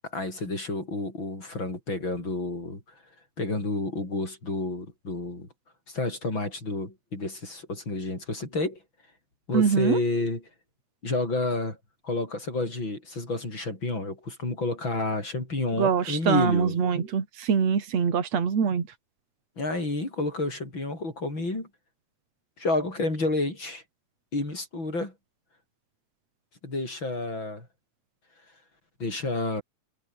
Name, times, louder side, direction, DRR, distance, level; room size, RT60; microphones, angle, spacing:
voice 1, 0.0-2.8 3.4-5.5 5.9-8.8 9.5-10.4 11.0-11.8 12.0-16.8 19.6-21.7 22.6-23.8 24.3-25.1 26.6-27.7 29.0-29.6, left 2 dB, 40° left, 8.3 m, -30 dB
voice 2, 9.5-10.0 15.8-18.9, right 6 dB, 60° right, 4.3 m, -24 dB
omnidirectional pair, 3.3 m